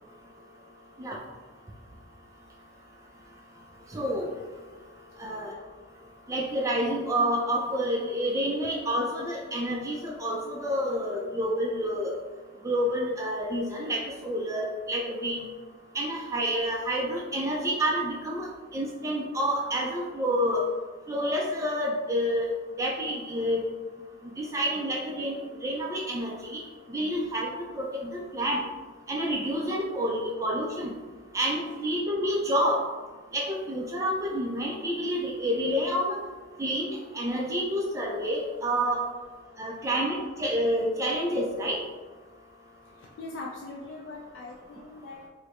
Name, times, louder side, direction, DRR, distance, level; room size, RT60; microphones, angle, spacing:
voice 1, 3.9-4.3 5.2-5.5 6.3-12.1 12.6-15.5 15.9-18.5 18.7-20.6 21.1-22.5 22.8-23.6 24.4-26.6 26.9-28.6 29.1-30.9 31.3-32.8 33.3-36.2 36.6-39.0 39.6-41.8, equal, 15° right, -2 dB, 0.3 m, -28 dB
voice 2, 43.0-45.3, left 2 dB, 70° left, -2 dB, 0.4 m, -41 dB
4.7 x 2.0 x 3.0 m, 1.3 s
head